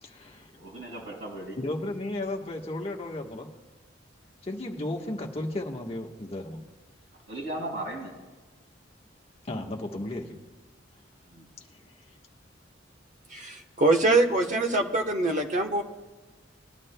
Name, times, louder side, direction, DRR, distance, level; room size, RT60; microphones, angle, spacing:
voice 1, 0.0-0.5 1.6-3.5 4.4-6.6 9.4-10.3 11.7-12.2, left 1 dB, 30° left, 1.3 m, -34 dB
voice 2, 0.5-1.6 7.3-8.1 11.3-11.5, right 1 dB, 70° right, 4.3 m, -36 dB
voice 3, 13.3-15.8, right 2 dB, 40° right, 1.0 m, -24 dB
21.0 x 11.5 x 2.2 m
head